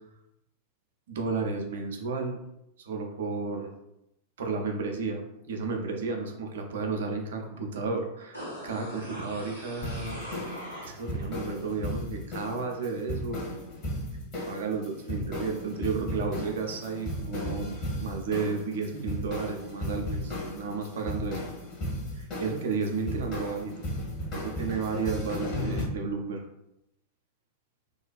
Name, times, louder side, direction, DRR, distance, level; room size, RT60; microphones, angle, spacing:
voice 1, 1.1-2.4 2.8-3.7 4.4-10.2 10.8-13.4 14.5-21.5 22.1-23.7 24.3-26.4, right 4 dB, 60° right, 3 dB, 0.4 m, -32 dB
sound 1, 8.3-11.3 11.7-11.8, equal, 90° left, 0.9 m, -41 dB
sound 2, 9.8-25.8, left 1 dB, 35° left, 1.0 m, -35 dB
2.4 x 2.2 x 2.3 m, 0.83 s
figure-of-eight pair, 90°, 0 cm